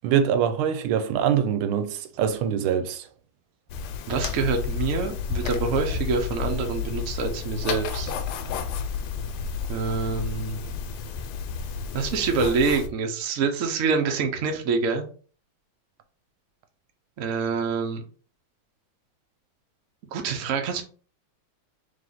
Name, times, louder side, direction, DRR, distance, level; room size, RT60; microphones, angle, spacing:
voice 1, 0.0-3.1, right 8 dB, 85° right, 1.5 m, -24 dB
sound 1, 3.7-12.9, left 6 dB, 85° left, 1.5 m, -31 dB
voice 2, 4.1-8.1 9.7-10.6 11.9-15.0 17.2-18.0 20.1-20.8, right 5 dB, 60° right, 0.8 m, -26 dB
3.5 x 3.2 x 3.8 m
omnidirectional pair, 2.3 m